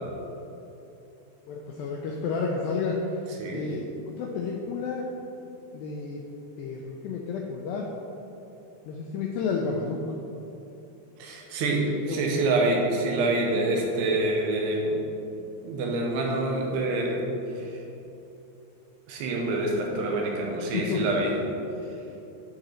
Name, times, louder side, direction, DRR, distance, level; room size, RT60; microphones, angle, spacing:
voice 1, 1.5-3.0 3.5-3.8 4.2-5.1 5.7-6.2 6.6-7.9 8.9-10.0 11.6-12.2 20.7-21.0, left 5 dB, 85° left, -1 dB, 2.0 m, -31 dB
voice 2, 3.3-3.7 11.2-15.0 15.3-17.2 17.6-17.8 19.1-21.4, right 2 dB, 85° right, 0 dB, 3.0 m, -27 dB
10.5 x 3.9 x 4.3 m, 2.9 s
omnidirectional pair, 4.7 m